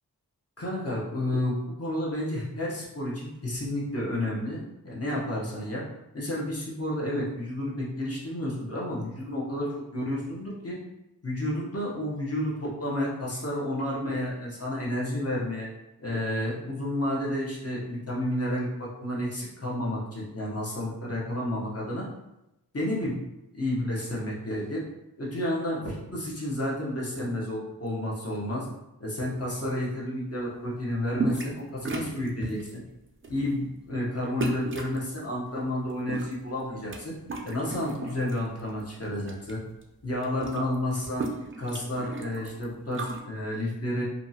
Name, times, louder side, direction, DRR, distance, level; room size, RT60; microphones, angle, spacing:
voice 1, 0.6-5.8 6.1-10.8 11.2-15.7 16.0-22.1 22.7-23.2 23.5-24.8 25.2-28.7 29.0-32.8 33.3-37.1 37.4-39.6 40.0-41.3 41.6-44.0, left 1 dB, 40° left, -4 dB, 0.9 m, -31 dB
sound 1, 31.1-31.6 31.8-32.7 33.2-33.5 34.4-35.0 35.8-37.0 37.2-38.4 38.8-39.5 39.8-39.9 40.1-43.2, right 3 dB, 35° right, 0.4 m, -34 dB
2.7 x 2.3 x 2.7 m, 0.90 s
wide cardioid pair, 50°, 38 cm